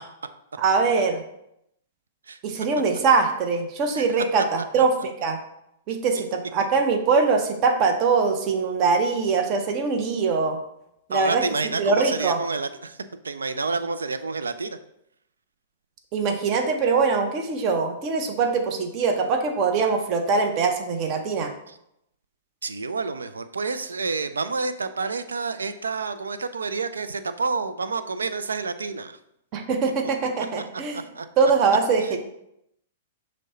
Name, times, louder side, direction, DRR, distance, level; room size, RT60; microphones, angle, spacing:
voice 1, 0.6-1.2 2.4-5.4 5.9-10.6 11.1-11.4 11.8-12.4 16.1-21.5 29.5-31.0 31.4-32.2, right 4 dB, 40° right, 5 dB, 0.7 m, -22 dB
voice 2, 3.9-4.4 4.8-4.9 6.1-6.2 11.1-13.0 13.2-14.8 21.7-21.8 22.6-29.2 30.9-31.3 32.0-32.2, right 4 dB, 80° right, 11 dB, 0.3 m, -29 dB
6.3 x 2.1 x 4.0 m, 0.80 s
hypercardioid pair, 110°, 0 cm